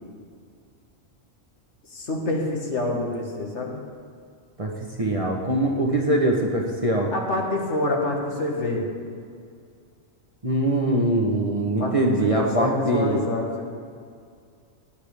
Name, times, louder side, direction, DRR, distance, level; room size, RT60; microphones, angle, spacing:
voice 1, 1.9-3.8 7.1-8.9 11.8-13.7, left 2 dB, 60° left, 0 dB, 1.9 m, -27 dB
voice 2, 5.0-7.1 10.4-13.2, right 1 dB, 30° right, -1 dB, 1.0 m, -22 dB
18.0 x 9.5 x 3.4 m, 2.2 s
omnidirectional pair, 1.4 m